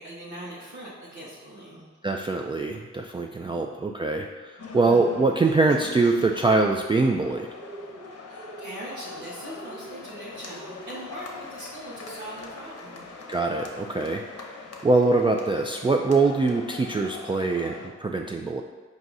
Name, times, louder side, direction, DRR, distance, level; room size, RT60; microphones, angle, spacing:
voice 1, 0.0-1.9 3.4-3.6 8.3-13.1, right 1 dB, 75° right, -8 dB, 1.1 m, -41 dB
voice 2, 2.0-7.5 13.3-14.2 14.8-18.6, right 3 dB, 20° right, 1 dB, 0.3 m, -23 dB
sound 1, 4.6-17.9, left 4 dB, 55° left, 0.8 m, -42 dB
sound 2, 7.6-8.1 8.3-8.8 9.5-10.0 10.5-11.0, right 2 dB, 45° right, 0.8 m, -43 dB
4.6 x 2.7 x 3.9 m, 1.3 s
cardioid pair, 45°, 30 cm